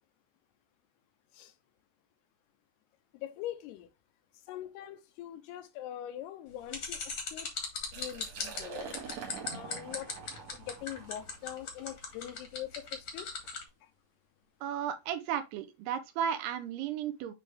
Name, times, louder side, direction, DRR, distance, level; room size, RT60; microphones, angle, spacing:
voice 1, 3.1-3.9 4.5-7.0 7.3-7.5 7.9-8.9 9.5-10.1 10.5-13.3, left 12 dB, 85° left, 2.5 m, -42 dB
sound 1, 6.7-13.6, left 6 dB, 50° left, 1.4 m, -38 dB
Liquid, 7.8-13.6, right 6 dB, 55° right, 2.0 m, -46 dB
voice 2, 14.6-17.3, right 9 dB, 80° right, 2.5 m, -34 dB
8.9 x 3.2 x 3.3 m
omnidirectional pair, 4.9 m